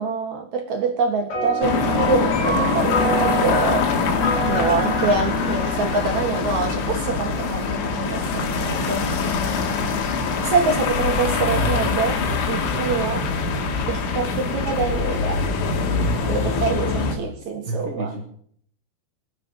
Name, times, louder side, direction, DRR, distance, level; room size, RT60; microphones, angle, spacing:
voice 1, 0.0-3.9 4.5-9.1 10.4-12.2 12.5-13.3 13.9-15.4 16.3-18.1, right 4 dB, 55° right, 2.2 m, -25 dB
sound 1, 1.3-7.1, equal, 55° left, 8.5 m, -27 dB
sound 2, 1.6-17.2, left 4 dB, 75° left, 4.5 m, -23 dB
voice 2, 12.2-13.0 17.7-18.2, right 2 dB, 85° right, 0.7 m, -32 dB
23.5 x 7.9 x 7.4 m
omnidirectional pair, 5.4 m